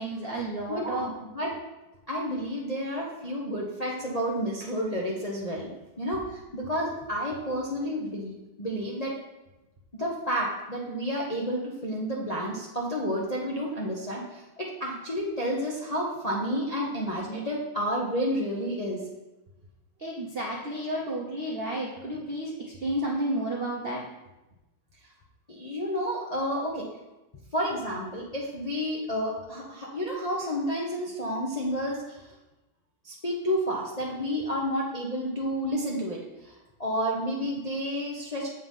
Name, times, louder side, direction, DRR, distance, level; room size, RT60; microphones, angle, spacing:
voice 1, 0.0-1.1 20.0-22.5 22.8-24.0, right 1 dB, 85° right, -2 dB, 0.5 m, -31 dB
voice 2, 0.7-1.6 2.1-5.7 6.0-9.2 9.9-19.0 25.5-26.9 27.5-32.3 33.0-38.5, equal, 55° left, -4 dB, 0.4 m, -30 dB
7.6 x 3.9 x 5.4 m, 1.0 s
omnidirectional pair, 2.3 m